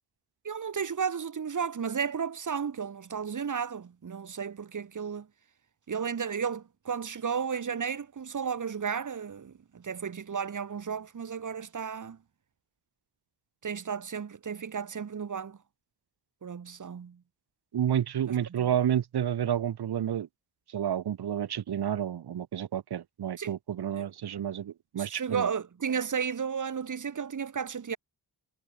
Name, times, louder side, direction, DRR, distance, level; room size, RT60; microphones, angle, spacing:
voice 1, 0.4-5.3 5.9-12.2 13.6-15.6 16.4-17.2 18.2-18.7 23.4-23.5 23.9-24.0 25.0-28.0, right 6 dB, 45° right, 6.0 m, -33 dB
voice 2, 17.7-20.3 20.7-25.5, right 10 dB, 70° right, 3.0 m, -30 dB
cardioid pair, 120°, 40 cm